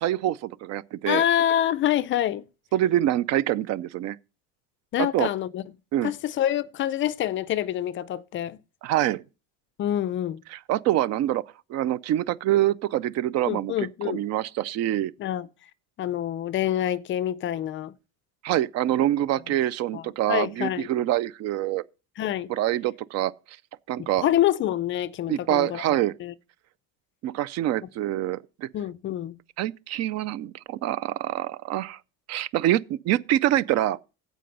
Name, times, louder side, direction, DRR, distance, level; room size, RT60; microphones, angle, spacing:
voice 1, 0.0-1.2 2.7-4.2 5.0-5.3 5.9-6.1 8.8-9.2 10.5-11.4 11.7-15.1 18.4-21.8 22.5-23.3 23.9-24.3 25.3-26.2 27.2-28.7 29.6-32.0 32.3-34.0, right 13 dB, 50° right, 0.4 m, -25 dB
voice 2, 1.1-2.4 4.9-5.6 6.0-8.6 9.8-10.4 13.5-14.2 15.2-15.5 16.0-17.9 19.9-20.9 22.2-22.5 24.2-25.8 26.2-26.3 28.7-29.4, left 12 dB, 35° left, 0.4 m, -26 dB
15.5 x 5.1 x 5.3 m
cardioid pair, 150°, 34 cm